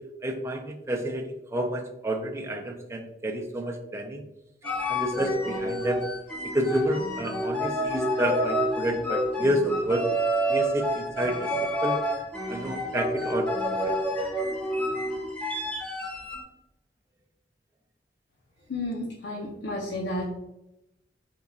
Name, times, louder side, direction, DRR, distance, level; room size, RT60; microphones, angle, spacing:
voice 1, 0.2-4.2 4.9-6.0 6.5-10.0 10.5-12.0 12.5-13.9, right 1 dB, 15° right, 1 dB, 0.5 m, -29 dB
sound 1, 4.6-16.4, equal, 10° left, 1.0 m, -29 dB
voice 2, 18.7-20.2, left 1 dB, 85° left, -2 dB, 0.7 m, -32 dB
4.1 x 3.7 x 2.4 m, 0.88 s
head